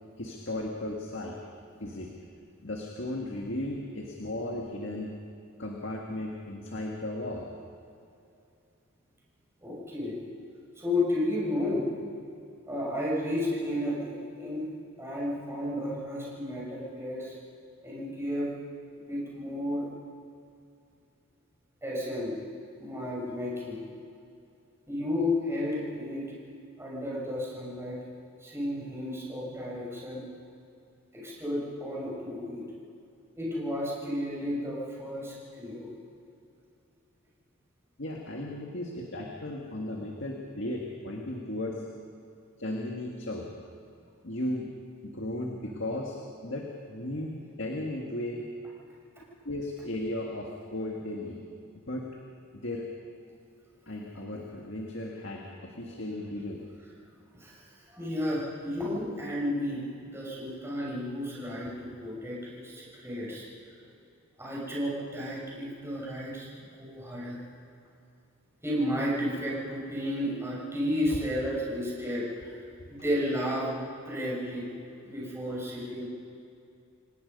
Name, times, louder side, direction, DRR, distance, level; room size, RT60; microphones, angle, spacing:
voice 1, 0.2-1.4 1.8-2.1 2.6-5.2 5.6-7.6 38.0-41.9 42.6-43.5 44.2-44.7 45.0-48.5 49.4-51.4 51.9-52.2 52.5-52.9 53.9-56.6 71.1-71.2, left 1 dB, 60° left, 0 dB, 1.9 m, -35 dB
voice 2, 9.6-10.1 10.8-11.8 12.7-14.7 15.0-17.3 17.8-18.5 18.9-19.8 21.8-22.3 22.8-23.8 24.9-26.2 26.8-28.0 28.4-30.2 31.1-32.6 33.4-35.9 57.3-63.5 63.8-63.9 64.4-67.4 68.6-72.6 72.9-74.7 75.0-76.0, left 1 dB, 10° right, -6 dB, 6.5 m, -32 dB
28.0 x 18.0 x 5.4 m, 2.6 s
head